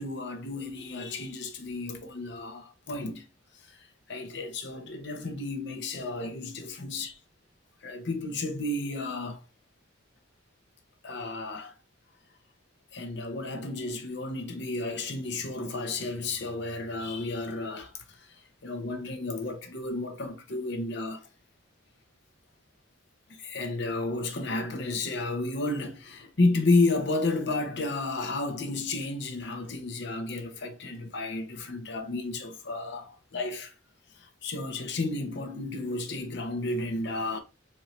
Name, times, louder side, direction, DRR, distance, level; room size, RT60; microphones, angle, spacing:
voice 1, 0.0-3.2 3.7-3.8 4.1-7.2 7.8-9.4 11.0-11.7 12.9-17.9 18.2-18.3 18.6-21.3 23.3-33.7 34.2-37.4, left 2 dB, 60° left, 0.8 m, -32 dB
4.2 x 2.7 x 3.1 m
head